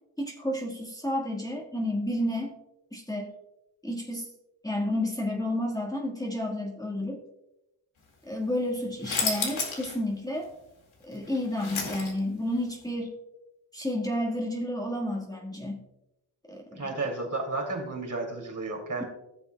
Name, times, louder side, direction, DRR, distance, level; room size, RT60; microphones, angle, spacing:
voice 1, 0.2-2.5 2.9-3.3 3.8-4.3 4.6-7.2 8.2-10.5 11.0-13.1 13.7-15.8 16.5-17.0, left 1 dB, 10° left, -3 dB, 1.6 m, -31 dB
sound 1, 9.0-9.9 10.3-10.4 11.1-12.4, left 4 dB, 90° left, 2.1 m, -31 dB
voice 2, 16.8-19.0, right 3 dB, 40° right, 0 dB, 2.8 m, -32 dB
16.0 x 7.0 x 2.3 m, 0.92 s
cardioid pair, 85°, 47 cm